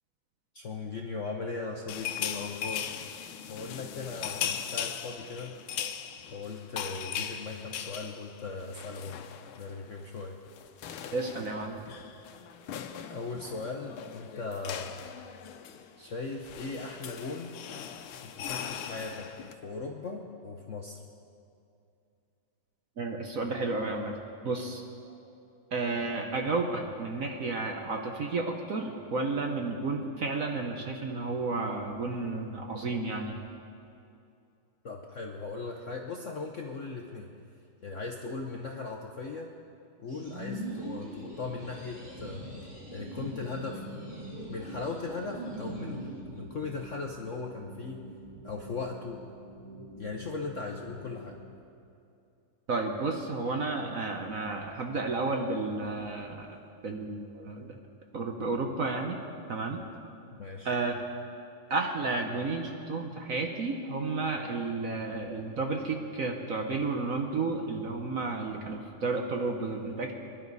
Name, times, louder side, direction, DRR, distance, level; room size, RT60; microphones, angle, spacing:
voice 1, 0.5-3.0 3.5-5.5 6.3-9.3 9.6-10.4 13.1-14.9 16.0-17.6 18.2-19.3 19.6-21.0 34.8-37.3 37.8-39.5 40.0-42.4 42.9-43.8 44.5-48.0 48.4-49.2 50.0-51.4 60.3-60.7, left 4 dB, 55° left, 1 dB, 0.8 m, -38 dB
sound 1, 1.9-9.8 10.0-10.2 10.5-19.5, left 9 dB, 80° left, 1.6 m, -39 dB
voice 2, 11.1-11.8 23.0-24.2 24.4-25.1 25.7-33.4 52.7-56.6 56.8-57.8 58.1-59.2 59.5-59.8 60.6-60.9 61.7-70.1, right 3 dB, 50° right, 2 dB, 1.1 m, -32 dB
sound 2, 40.1-46.2, right 1 dB, 35° right, 3.7 m, -41 dB
sound 3, 43.6-51.5, right 1 dB, 75° right, 2.7 m, -48 dB
24.5 x 11.5 x 4.1 m, 2.6 s
omnidirectional pair, 2.3 m